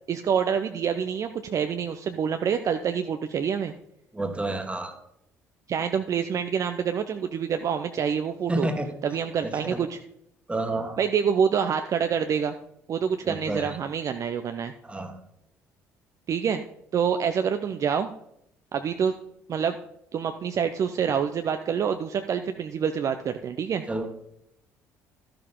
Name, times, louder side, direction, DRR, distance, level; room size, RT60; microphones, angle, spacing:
voice 1, 0.1-3.7 5.7-8.7 9.0-10.0 11.0-12.5 12.9-14.7 16.3-16.6 16.9-18.1 18.7-19.1 19.5-19.8 20.1-23.8, right 7 dB, 45° right, 7 dB, 0.6 m, -26 dB
voice 2, 4.1-4.9 8.5-8.9 9.4-9.8 10.5-11.0 13.2-13.8 14.8-15.1 23.9-24.2, right 2 dB, 15° right, 6 dB, 1.6 m, -30 dB
12.5 x 6.7 x 3.7 m, 0.76 s
figure-of-eight pair, 50°, 8 cm